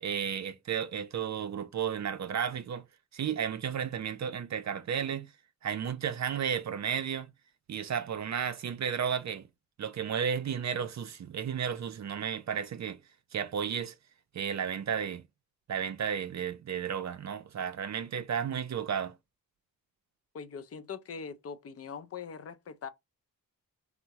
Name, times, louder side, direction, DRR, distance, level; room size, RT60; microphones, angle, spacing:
voice 1, 0.0-2.8 3.1-5.3 5.6-7.3 7.7-9.5 9.8-13.0 13.3-14.0 14.3-15.2 15.7-19.1, right 8 dB, 55° right, 0.5 m, -33 dB
voice 2, 20.3-22.9, left 6 dB, 45° left, 0.5 m, -42 dB
3.4 x 2.0 x 2.8 m
cardioid pair, 85°, 34 cm